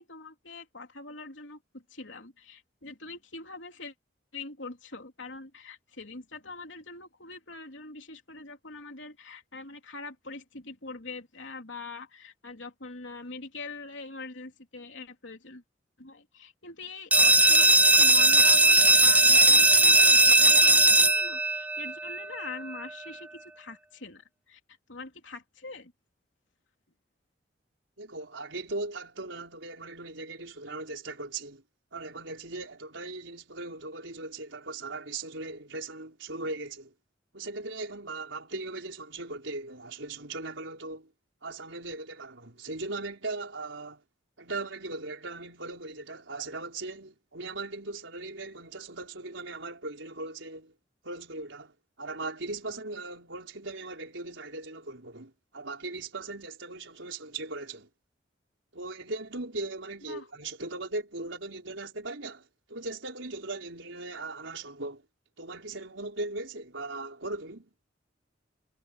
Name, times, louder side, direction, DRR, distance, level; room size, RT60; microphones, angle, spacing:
voice 1, 0.0-3.9 4.3-15.6 16.0-24.6 24.9-25.9 60.0-60.3, left 3 dB, 85° left, 3.4 m, -43 dB
sound 1, 17.1-22.5, right 2 dB, 10° right, 0.4 m, -19 dB
voice 2, 28.0-31.6 31.9-36.9 37.3-41.1 41.4-44.0 44.4-50.7 51.0-57.9 58.7-65.0 65.4-67.7, right 2 dB, 90° right, 4.9 m, -38 dB
head